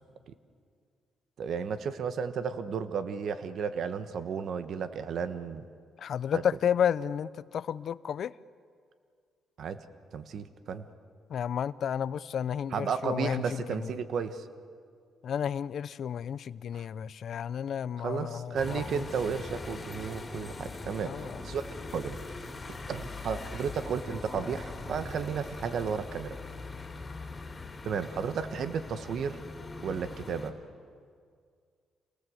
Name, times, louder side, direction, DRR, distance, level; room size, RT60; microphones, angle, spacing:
voice 1, 1.4-5.6 6.3-6.4 9.6-9.8 10.1-10.8 12.7-14.4 16.7-16.9 18.0-21.7 21.9-22.2 22.9-26.3 27.8-29.4 29.8-30.6, right 6 dB, 65° right, 1.3 m, -33 dB
voice 2, 6.0-8.3 11.3-13.9 15.2-19.0 21.1-21.4, left 8 dB, 60° left, 0.5 m, -32 dB
sound 1, 18.6-30.5, left 3 dB, 25° left, 3.1 m, -41 dB
27.5 x 19.0 x 7.9 m
cardioid pair, 90°, 0 cm